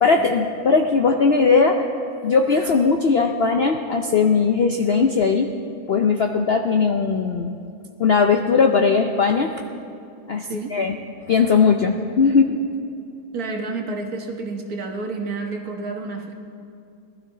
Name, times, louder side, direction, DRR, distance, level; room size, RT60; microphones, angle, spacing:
voice 1, 0.0-5.5 5.9-7.5 8.0-9.5 10.3-10.9 11.3-12.6, left 5 dB, 60° left, 4 dB, 0.6 m, -19 dB
voice 2, 13.3-16.3, right 3 dB, 65° right, 3 dB, 1.7 m, -29 dB
20.0 x 12.5 x 3.9 m, 2.6 s
omnidirectional pair, 1.7 m